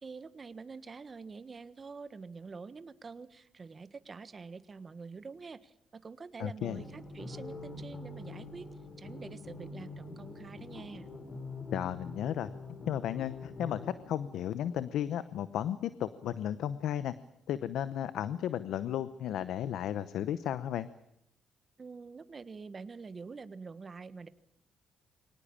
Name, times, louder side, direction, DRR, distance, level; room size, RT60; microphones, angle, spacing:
voice 1, 0.0-8.7 9.0-11.1 21.8-24.3, right 4 dB, 35° right, 13 dB, 1.3 m, -46 dB
voice 2, 6.4-6.8 11.7-12.5 12.9-17.1 17.5-20.9, left 10 dB, 80° left, 14 dB, 0.9 m, -34 dB
sound 1, 6.7-14.9, left 3 dB, 40° left, 4.6 m, -45 dB
24.0 x 18.5 x 8.8 m, 0.79 s
cardioid pair, 90°, 0 cm